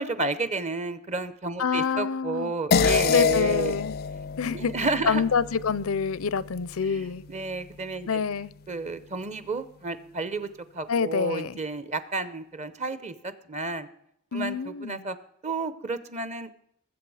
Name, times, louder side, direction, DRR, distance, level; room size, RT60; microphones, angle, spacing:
voice 1, 0.0-3.8 4.5-5.2 6.9-8.2 8.7-10.5 10.7-13.9 14.3-15.2 15.4-16.5, right 3 dB, 35° right, 0.8 m, -31 dB
voice 2, 1.6-2.5 2.8-4.0 4.4-4.7 5.1-7.2 8.1-8.5 10.9-11.6 14.3-15.1, left 6 dB, 90° left, 0.6 m, -27 dB
sound 1, 2.7-7.4, left 6 dB, 45° left, 0.4 m, -27 dB
20.0 x 7.9 x 4.9 m
head